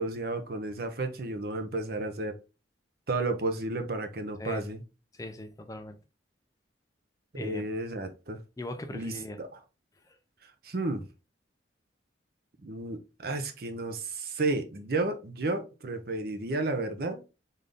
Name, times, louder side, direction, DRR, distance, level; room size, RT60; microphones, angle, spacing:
voice 1, 0.0-2.4 3.1-4.8 7.3-8.4 8.9-9.5 10.4-11.0 12.6-17.2, right 2 dB, 55° right, 0.6 m, -32 dB
voice 2, 5.1-6.0 7.4-7.7 8.6-9.4 10.1-10.2, left 1 dB, 20° left, 0.4 m, -39 dB
3.8 x 2.6 x 3.3 m
head